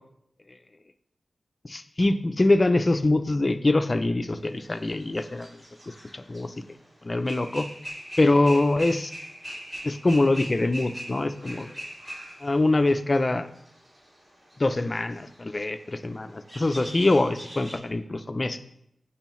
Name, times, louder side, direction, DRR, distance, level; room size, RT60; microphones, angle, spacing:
voice 1, 1.6-5.5 6.1-6.5 7.0-7.7 8.2-9.1 9.8-11.7 12.4-13.5 14.6-18.6, left 2 dB, 30° left, 9 dB, 0.4 m, -24 dB
sound 1, 4.6-6.9 7.2-17.8, equal, 35° right, 2.4 m, -41 dB
9.0 x 4.5 x 3.1 m, 0.76 s
wide cardioid pair, 105°, 0 cm